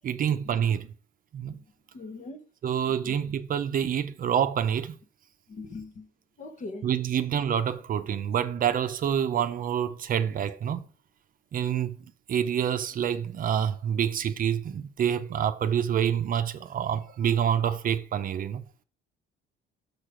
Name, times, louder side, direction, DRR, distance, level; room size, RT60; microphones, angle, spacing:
voice 1, 0.0-0.9 1.3-1.6 2.6-5.0 6.8-10.9 11.5-12.0 12.3-18.6, right 9 dB, 45° right, 0.6 m, -27 dB
voice 2, 1.9-2.4 3.1-3.2 5.5-6.1 6.4-6.9, left 3 dB, 40° left, 1.1 m, -40 dB
6.6 x 6.5 x 5.0 m
cardioid pair, 145°, 20 cm